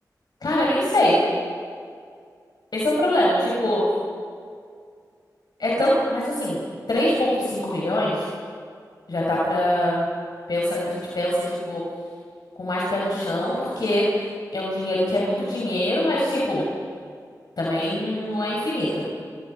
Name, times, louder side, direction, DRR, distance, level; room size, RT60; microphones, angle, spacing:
voice 1, 0.4-1.2 2.7-3.9 5.6-6.6 6.9-8.3 9.1-10.1 10.5-11.8 12.6-14.1 14.5-16.6 17.6-19.0, left 1 dB, 70° left, -5 dB, 6.5 m, -23 dB
28.0 x 27.0 x 5.8 m, 2.2 s
cardioid pair, 55°, 7 cm